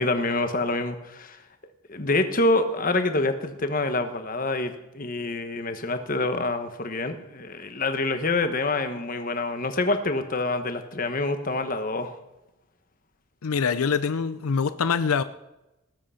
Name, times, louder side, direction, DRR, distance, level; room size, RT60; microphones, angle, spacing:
voice 1, 0.0-1.4 1.9-12.1, left 2 dB, 40° left, 8 dB, 1.1 m, -26 dB
voice 2, 13.4-15.2, left 6 dB, 85° left, 13 dB, 0.5 m, -24 dB
19.0 x 7.9 x 5.7 m, 0.95 s
head